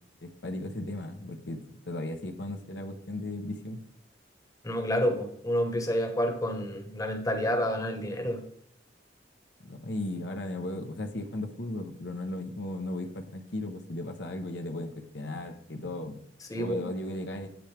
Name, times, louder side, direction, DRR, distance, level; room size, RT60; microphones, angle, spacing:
voice 1, 0.2-3.8 9.6-16.2 16.6-17.5, left 1 dB, 65° left, 4 dB, 1.0 m, -36 dB
voice 2, 4.6-8.4 16.5-16.8, equal, 20° left, 5 dB, 1.2 m, -29 dB
9.0 x 8.5 x 3.4 m, 0.69 s
head